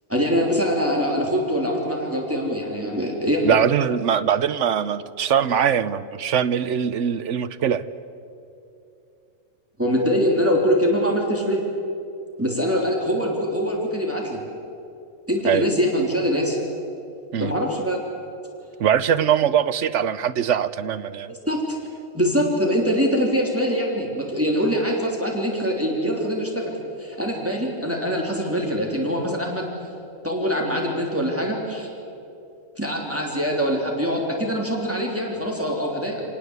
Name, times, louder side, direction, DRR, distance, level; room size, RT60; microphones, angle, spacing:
voice 1, 0.1-3.6 9.8-11.6 12.4-14.4 15.3-16.6 17.4-18.0 21.3-21.8 22.1-26.7 27.0-29.7 30.2-31.9 32.8-36.2, equal, 10° right, -1 dB, 3.3 m, -23 dB
voice 2, 3.4-7.8 15.4-15.6 17.3-17.5 18.8-21.3, right 8 dB, 65° right, 13 dB, 1.1 m, -22 dB
28.0 x 19.0 x 8.1 m, 2.7 s
omnidirectional pair, 1.4 m